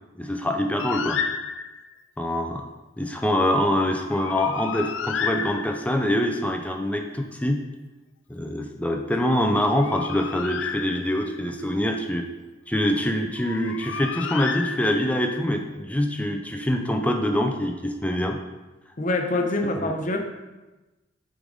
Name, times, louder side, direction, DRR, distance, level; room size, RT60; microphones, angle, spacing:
voice 1, 0.2-1.2 2.2-2.7 3.0-7.6 8.3-12.3 12.7-18.4 19.6-19.9, left 1 dB, 10° left, 3 dB, 0.5 m, -25 dB
Bird, 0.8-2.0 4.0-6.1 9.5-11.4 13.4-15.3, left 6 dB, 80° left, 0.4 m, -32 dB
voice 2, 19.0-20.2, left 2 dB, 40° left, 4 dB, 0.8 m, -25 dB
8.1 x 3.9 x 5.1 m, 1.1 s
head